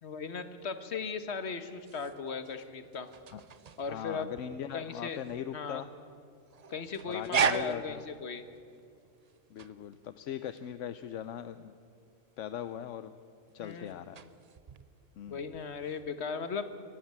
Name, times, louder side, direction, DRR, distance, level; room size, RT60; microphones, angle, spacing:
voice 1, 0.0-3.1 3.8-4.3 4.7-5.2 5.5-5.8 6.7-8.4 13.6-14.0 15.3-16.7, left 5 dB, 60° left, 10 dB, 1.5 m, -37 dB
sound 1, 1.7-16.1, right 6 dB, 45° right, 0.6 m, -39 dB
voice 2, 3.9-5.9 7.0-8.0 9.5-11.7 12.4-13.1 13.5-14.2 15.2-15.5, left 9 dB, 75° left, 12 dB, 1.0 m, -40 dB
23.0 x 12.0 x 9.5 m, 2.4 s
omnidirectional pair, 1.3 m